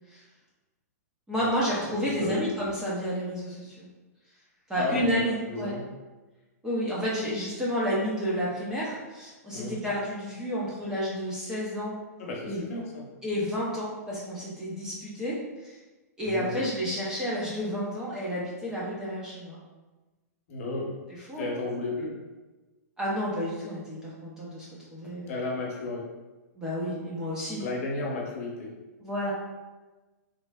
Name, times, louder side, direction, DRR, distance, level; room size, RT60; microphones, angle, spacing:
voice 1, 1.3-3.9 4.7-5.8 6.6-11.9 12.5-12.6 13.2-15.8 16.2-19.6 21.1-21.5 23.0-25.4 26.6-27.6 29.0-29.3, equal, 5° right, -7 dB, 0.4 m, -30 dB
voice 2, 2.0-2.5 4.8-5.9 9.5-9.8 12.2-13.1 16.3-16.7 20.5-20.9 21.4-22.1 25.3-26.1 27.6-28.7, left 2 dB, 50° left, -1 dB, 0.8 m, -33 dB
3.5 x 3.1 x 2.2 m, 1.2 s
hypercardioid pair, 165°, 9 cm